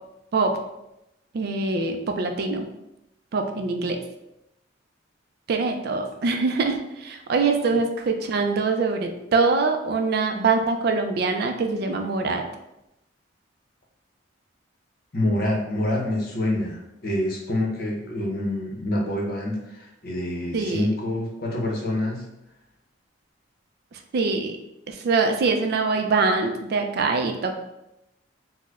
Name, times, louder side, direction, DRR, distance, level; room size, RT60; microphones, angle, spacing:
voice 1, 1.3-2.7 3.3-4.0 5.5-12.4 20.5-20.9 24.1-24.5 24.9-27.5, right 4 dB, 55° right, 5 dB, 0.3 m, -23 dB
voice 2, 15.1-22.3, left 1 dB, 50° left, -1 dB, 0.7 m, -26 dB
4.3 x 2.1 x 2.4 m, 0.87 s
head